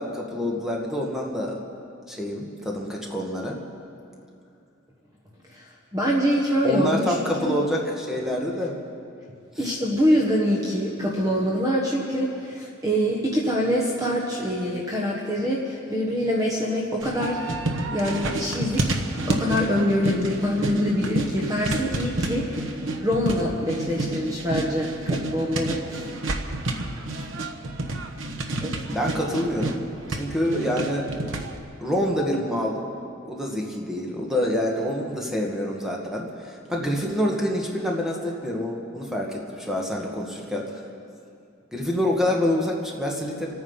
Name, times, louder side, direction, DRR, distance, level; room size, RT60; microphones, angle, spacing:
voice 1, 0.0-1.6 2.1-3.6 6.6-8.8 9.5-9.7 28.9-31.1 31.8-32.8 33.2-40.8 41.7-43.5, left 1 dB, ahead, -2 dB, 1.7 m, -27 dB
voice 2, 5.5-7.5 9.6-17.6 17.9-22.7 23.0-26.1 28.6-28.7, equal, 20° right, -3 dB, 1.3 m, -25 dB
sound 1, 17.0-31.6, right 2 dB, 75° right, 1.2 m, -29 dB
27.5 x 9.3 x 5.5 m, 2.5 s
head